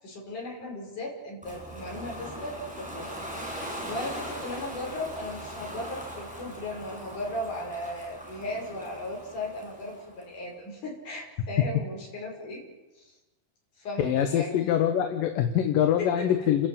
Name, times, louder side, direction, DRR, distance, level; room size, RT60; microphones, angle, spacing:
voice 1, 0.0-3.6 3.8-12.6 13.0-13.1 13.8-14.7 16.0-16.2, left 1 dB, 60° left, -1 dB, 7.4 m, -37 dB
Ocean, 1.4-10.3, equal, ahead, 7.5 m, -40 dB
voice 2, 14.0-16.7, left 10 dB, 80° left, 6 dB, 3.1 m, -24 dB
30.0 x 14.5 x 8.8 m, 1.1 s
omnidirectional pair, 3.9 m